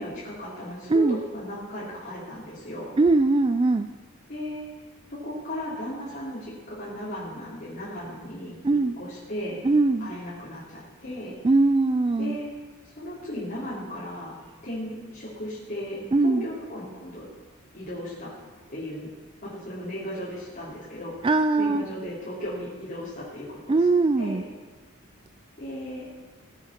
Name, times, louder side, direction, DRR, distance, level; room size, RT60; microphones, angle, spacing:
voice 1, 0.0-3.0 4.3-4.7 5.1-8.6 9.0-9.6 10.0-11.3 12.2-12.5 13.0-14.3 14.6-17.3 17.7-18.3 18.7-19.1 19.4-21.3 21.6-23.9 24.2-24.5 25.6-26.1, equal, 45° left, -9 dB, 3.6 m, -36 dB
voice 2, 3.0-3.9 8.6-9.0 9.6-10.1 11.4-12.4 16.1-16.5 21.2-21.8 23.7-24.4, right 3 dB, 25° right, 9 dB, 0.3 m, -21 dB
19.5 x 8.6 x 4.4 m, 1.4 s
head